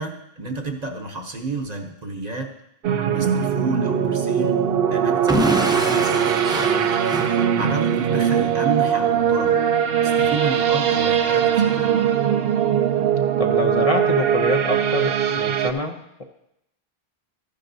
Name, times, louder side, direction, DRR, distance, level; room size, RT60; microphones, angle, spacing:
voice 1, 0.0-2.5 3.1-4.6 4.9-6.3 7.5-9.6 9.9-11.9, right 3 dB, 45° right, 4 dB, 0.9 m, -30 dB
sound 1, 2.8-15.7, right 8 dB, 70° right, 0.8 m, -20 dB
Explosion / Shatter, 5.3-8.1, equal, 5° right, 0.5 m, -26 dB
voice 2, 13.4-16.2, left 3 dB, 40° left, 2 dB, 0.6 m, -26 dB
13.5 x 10.5 x 2.7 m, 0.82 s
omnidirectional pair, 1.1 m